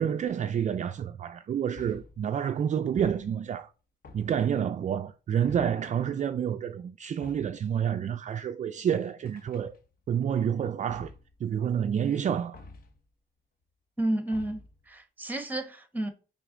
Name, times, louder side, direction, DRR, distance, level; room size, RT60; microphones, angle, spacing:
voice 1, 0.0-3.7 4.1-9.7 10.1-11.1 11.4-12.6, right 8 dB, 40° right, 0.4 m, -29 dB
sound 1, 1.8-2.3 3.0-3.6 4.0-4.7 5.5-6.0 7.2-7.7 9.3-10.1 10.9-11.4 12.5-13.1 14.3-14.9, left 3 dB, 50° left, 1.0 m, -49 dB
voice 2, 14.0-14.6 14.9-16.1, right 1 dB, 10° right, 1.1 m, -31 dB
5.7 x 4.3 x 3.8 m
cardioid pair, 90°, 20 cm